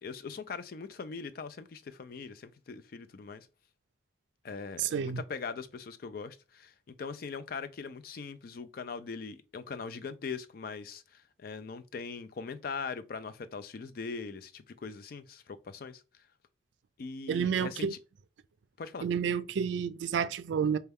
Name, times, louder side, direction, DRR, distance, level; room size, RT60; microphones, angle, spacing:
voice 1, 0.0-3.5 4.4-16.0 17.0-18.0 18.8-19.1, left 5 dB, 50° left, 0.4 m, -41 dB
voice 2, 4.8-5.2 17.3-17.9 19.0-20.8, right 7 dB, 80° right, 0.3 m, -30 dB
4.2 x 2.2 x 3.4 m
head